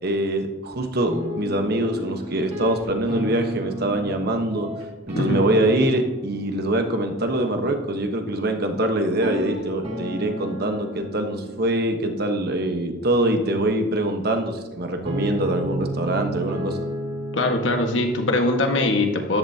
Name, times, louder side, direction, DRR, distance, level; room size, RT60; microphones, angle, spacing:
voice 1, 0.0-4.7 5.1-16.8, right 1 dB, 55° right, 5 dB, 1.2 m, -24 dB
sound 1, 1.1-18.8, equal, 35° right, 2.3 m, -34 dB
voice 2, 17.3-19.4, left 2 dB, 75° left, 3 dB, 1.6 m, -22 dB
13.5 x 11.5 x 2.9 m, 1.2 s
head